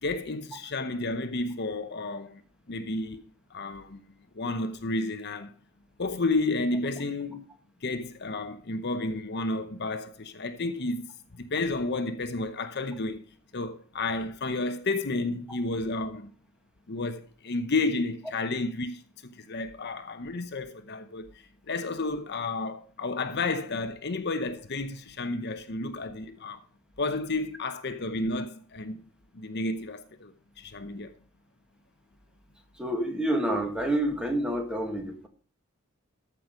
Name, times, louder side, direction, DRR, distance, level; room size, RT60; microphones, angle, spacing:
voice 1, 0.0-2.4 2.7-3.2 3.5-4.0 4.3-5.5 6.0-7.4 7.8-11.1 11.3-13.2 13.5-16.3 16.9-19.0 19.4-26.6 27.0-29.0 29.3-31.1, left 2 dB, 50° left, 0.9 m, -31 dB
voice 2, 32.7-35.3, right 1 dB, 5° right, 1.7 m, -28 dB
14.0 x 6.1 x 5.0 m
head